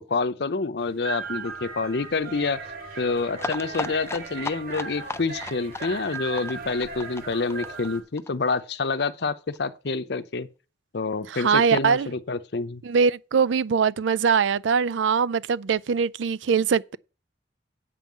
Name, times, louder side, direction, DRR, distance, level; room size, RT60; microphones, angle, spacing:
voice 1, 0.1-2.6 3.0-10.5 10.9-12.8, left 4 dB, 60° left, 0.7 m, -27 dB
sound 1, 0.8-8.0, right 4 dB, 55° right, 2.7 m, -37 dB
sound 2, 3.4-8.9 9.2-9.3 9.5-9.6 9.9-10.0, left 3 dB, 15° left, 0.5 m, -36 dB
voice 2, 11.3-12.1 12.8-17.0, right 6 dB, 90° right, 0.4 m, -22 dB
8.3 x 5.5 x 7.4 m
head